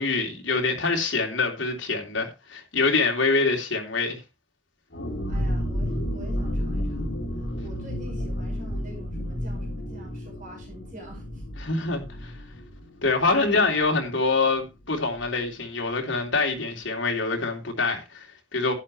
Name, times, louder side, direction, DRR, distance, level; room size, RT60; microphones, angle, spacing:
voice 1, 0.0-4.2 11.6-12.0 13.0-18.7, left 3 dB, 85° left, 3.2 m, -25 dB
sound 1, 4.9-14.3 14.6-14.7 15.0-15.3, equal, 65° left, 4.3 m, -31 dB
voice 2, 5.3-11.4 11.9-12.0 13.3-13.7, right 1 dB, 45° right, 5.9 m, -45 dB
11.5 x 10.5 x 3.2 m
head